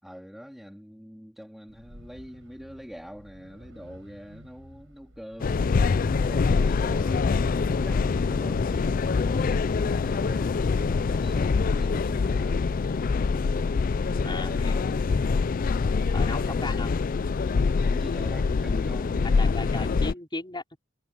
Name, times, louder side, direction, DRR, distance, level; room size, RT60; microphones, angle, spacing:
voice 1, 0.0-5.6 6.1-12.6 14.1-15.3 16.5-16.9 17.8-20.1, equal, ahead, 3.4 m, -44 dB
sound 1, 1.7-17.7, equal, 70° right, 7.5 m, -52 dB
sound 2, 5.4-20.1, left 4 dB, 45° left, 0.4 m, -25 dB
voice 2, 14.2-14.7 16.1-16.9 19.4-20.8, left 2 dB, 25° left, 4.9 m, -35 dB
head